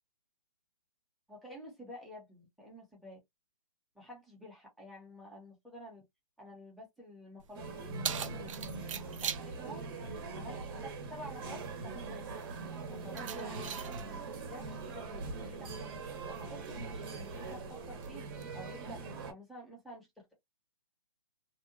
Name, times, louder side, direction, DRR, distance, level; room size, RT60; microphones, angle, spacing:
voice 1, 1.3-3.2 3.9-6.0 6.4-9.8 10.3-12.4 12.9-15.9 16.2-20.3, equal, ahead, 0.9 m, -50 dB
Keys jangling, 7.4-18.4, right 7 dB, 60° right, 0.5 m, -45 dB
sound 1, 7.5-19.3, right 4 dB, 40° right, 0.9 m, -42 dB
2.8 x 2.2 x 2.4 m
hypercardioid pair, 150°, 19 cm